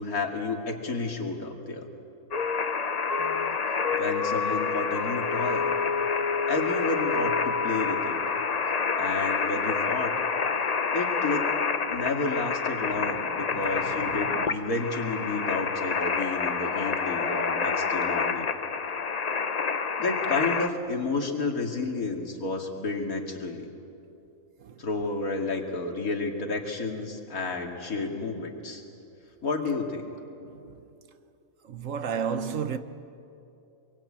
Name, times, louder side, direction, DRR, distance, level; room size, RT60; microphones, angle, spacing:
voice 1, 0.0-1.9 3.9-5.7 6.5-8.2 9.0-10.2 10.9-11.5 11.9-18.5 20.0-23.7 24.8-28.8 29.4-30.1, left 3 dB, 75° left, 2.8 m, -31 dB
sound 1, 2.3-20.7, left 5 dB, 35° left, 0.7 m, -28 dB
voice 2, 13.0-14.6 24.6-25.1 30.4-30.9 31.6-32.8, right 7 dB, 65° right, 1.3 m, -35 dB
26.0 x 23.0 x 8.7 m
omnidirectional pair, 1.5 m